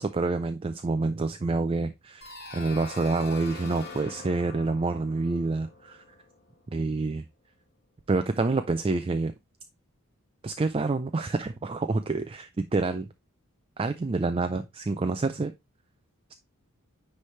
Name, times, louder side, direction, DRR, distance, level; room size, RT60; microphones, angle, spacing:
voice 1, 0.0-6.0 6.7-7.2 8.1-9.3 10.4-13.1 13.8-15.5, right 3 dB, 25° right, 0.3 m, -27 dB
sound 1, 2.2-6.9, left 3 dB, 45° left, 1.6 m, -43 dB
9.8 x 3.3 x 3.2 m
head